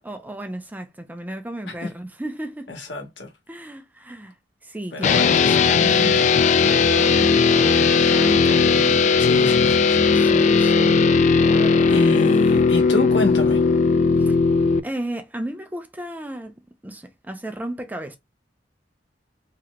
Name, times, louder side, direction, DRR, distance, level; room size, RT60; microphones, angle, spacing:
voice 1, 0.0-2.7 3.5-4.3 4.6-9.2 10.1-12.1 14.2-14.4 14.8-16.5 16.8-18.2, right 1 dB, 10° right, 0.5 m, -34 dB
voice 2, 2.7-3.3 4.9-5.8 9.2-10.1 11.9-13.6, left 2 dB, 90° left, 1.3 m, -27 dB
sound 1, 5.0-14.8, left 5 dB, 40° left, 0.3 m, -17 dB
3.1 x 2.9 x 2.3 m
head